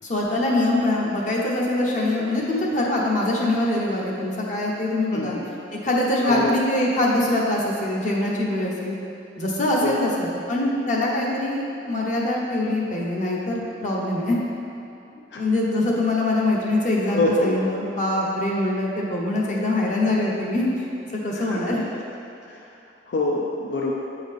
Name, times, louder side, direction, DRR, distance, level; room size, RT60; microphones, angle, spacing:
voice 1, 0.0-5.4 5.8-8.9 9.4-14.4 15.3-20.9 21.2-21.9, left 1 dB, 40° left, -3 dB, 0.9 m, -23 dB
voice 2, 5.1-5.5 6.2-6.5 9.8-10.1 15.3-15.4 17.1-17.7 21.4-21.6 22.5-22.7 23.1-23.9, left 2 dB, 70° left, -2 dB, 0.5 m, -25 dB
8.1 x 3.8 x 3.5 m, 2.7 s
head